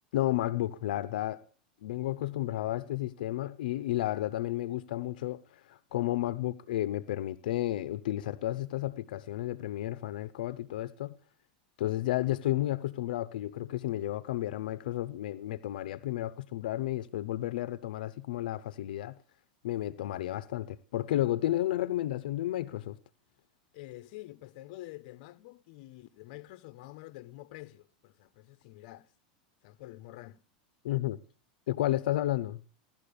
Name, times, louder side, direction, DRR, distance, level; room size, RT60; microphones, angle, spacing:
voice 1, 0.1-1.4 1.8-11.1 11.8-19.1 19.6-23.0 30.8-31.2 31.7-32.6, left 14 dB, 75° left, 0.8 m, -32 dB
voice 2, 23.7-29.1 29.6-30.4, left 17 dB, 55° left, 1.1 m, -48 dB
17.0 x 12.5 x 6.8 m
supercardioid pair, 145°, 5 cm